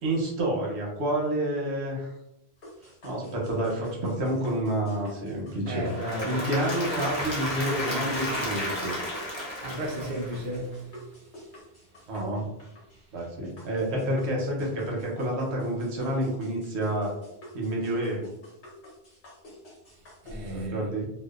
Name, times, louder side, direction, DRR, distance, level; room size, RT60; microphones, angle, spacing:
voice 1, 0.0-2.1 2.8-5.8 6.2-8.9 12.1-12.5 13.1-17.1 17.5-18.3 20.5-21.1, right 1 dB, 85° right, 1.0 m, -29 dB
sound 1, 2.6-20.5, left 1 dB, 75° left, 1.2 m, -49 dB
Applause / Crowd, 5.7-10.7, equal, 30° left, 0.7 m, -32 dB
voice 2, 5.7-6.4 9.6-10.9 20.2-20.9, equal, 65° right, 0.7 m, -33 dB
2.6 x 2.1 x 2.3 m
omnidirectional pair, 1.1 m